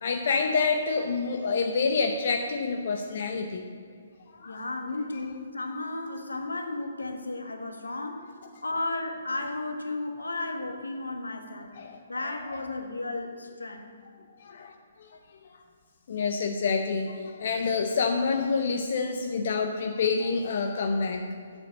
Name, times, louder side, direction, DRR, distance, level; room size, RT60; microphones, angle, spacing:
voice 1, 0.0-3.6 4.3-4.6 11.8-12.0 12.5-12.6 14.4-15.2 16.1-21.2, left 4 dB, 55° left, 4 dB, 0.7 m, -27 dB
voice 2, 4.4-8.3 8.6-11.7 12.1-13.9, left 2 dB, 80° left, 4 dB, 1.4 m, -34 dB
8.0 x 6.9 x 8.1 m, 2.2 s
figure-of-eight pair, 130°, 0 cm